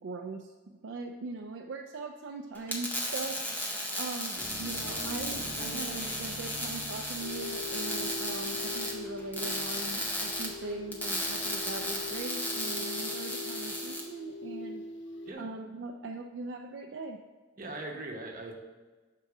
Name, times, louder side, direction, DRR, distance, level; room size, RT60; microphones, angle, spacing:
voice 1, 0.0-3.4 4.0-14.8 15.4-17.2, right 3 dB, 65° right, 3 dB, 0.4 m, -40 dB
sound 1, 2.5-14.0, left 1 dB, 10° left, 0.7 m, -35 dB
sound 2, 4.3-12.2, equal, 40° left, 1.4 m, -47 dB
sound 3, 7.2-15.3, left 3 dB, 60° left, 0.4 m, -41 dB
voice 2, 17.6-18.5, right 2 dB, 40° right, 0 dB, 0.9 m, -40 dB
6.4 x 3.7 x 4.8 m, 1.3 s
head